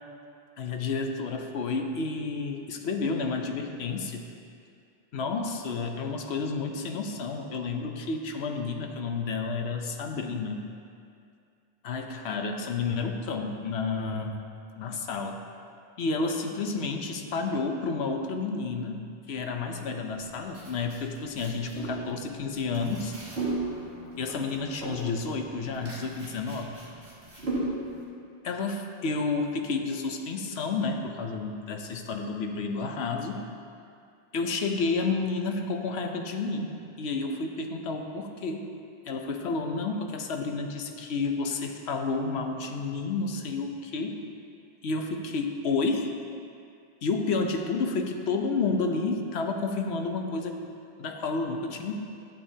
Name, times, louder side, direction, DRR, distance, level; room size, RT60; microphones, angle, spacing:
voice 1, 0.6-4.2 5.1-10.7 11.8-14.4 14.8-15.4 16.0-23.1 24.2-26.7 28.4-33.4 34.3-38.7 39.1-44.2 44.8-46.1 47.0-50.6 51.0-51.9, left 4 dB, 70° left, 4 dB, 1.0 m, -30 dB
sound 1, 20.1-28.0, right 2 dB, 65° right, 2.3 m, -36 dB
11.5 x 8.7 x 2.8 m, 2.4 s
omnidirectional pair, 1.2 m